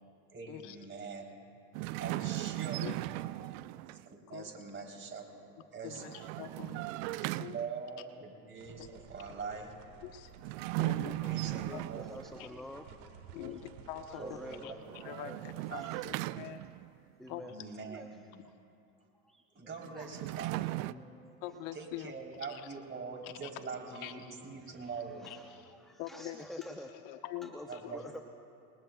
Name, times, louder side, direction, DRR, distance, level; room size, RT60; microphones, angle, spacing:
voice 1, 0.3-1.3 2.0-3.1 3.9-6.0 7.5-8.8 9.1-9.7 11.1-12.2 12.9-13.0 13.4-13.6 14.2-14.8 15.5-15.7 16.3-16.4 17.5-18.4 19.0-19.1 19.5-21.1 21.7-25.3 27.7-28.0, right 5 dB, 25° right, 1 dB, 3.5 m, -44 dB
sound 1, 1.7-4.1 5.9-7.9 10.4-12.4 14.8-17.0 19.8-20.9, right 19 dB, 60° right, 0.5 m, -37 dB
voice 2, 4.3-4.6 5.8-7.6 8.8-8.9 10.0-10.3 10.8-11.3 11.7-11.8 12.4-12.5 13.3-16.6 17.3-17.4 18.4-18.5 21.4-22.1 22.5-22.7 23.2-23.5 24.0-24.4 25.3-25.7 26.0-26.4 26.9-28.0, left 12 dB, 65° left, 7 dB, 1.2 m, -45 dB
sound 2, 8.6-14.7, right 6 dB, 85° right, 1.8 m, -55 dB
voice 3, 11.0-13.2 14.1-14.8 15.0-16.1 16.4-16.6 17.2-18.2 19.2-19.7 19.9-20.1 20.9-21.6 22.4-22.5 24.6-26.9 27.4-28.2, left 1 dB, ahead, 4 dB, 0.7 m, -50 dB
28.5 x 21.0 x 2.3 m, 2.6 s
supercardioid pair, 105°, 43 cm